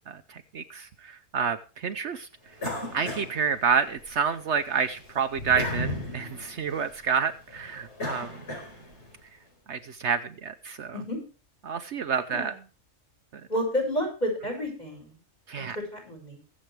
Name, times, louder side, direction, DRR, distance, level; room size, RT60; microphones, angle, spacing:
voice 1, 0.1-2.3 2.9-8.3 9.7-10.9 11.6-12.5 15.5-15.8, right 6 dB, 65° right, 9 dB, 1.0 m, -29 dB
sound 1, 2.6-4.1 4.5-9.1, left 1 dB, 60° left, 4.8 m, -35 dB
voice 2, 12.1-12.6 13.5-15.2 15.6-15.7 15.9-16.4, equal, 35° left, 2 dB, 6.1 m, -31 dB
23.0 x 7.7 x 3.4 m, 0.35 s
omnidirectional pair, 1.3 m